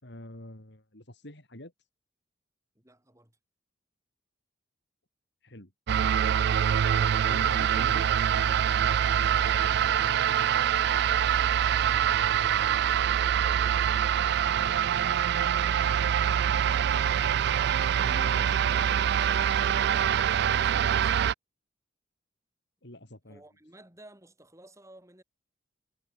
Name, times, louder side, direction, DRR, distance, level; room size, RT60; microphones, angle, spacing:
voice 1, 0.0-1.7 5.4-5.7 7.3-8.1 18.0-18.5 22.8-23.4, left 1 dB, 60° left, 4.6 m, -44 dB
voice 2, 2.8-3.4 20.4-21.2 23.3-25.2, right 1 dB, 15° right, 5.7 m, -55 dB
sound 1, 5.9-21.3, right 9 dB, 60° right, 0.3 m, -25 dB
head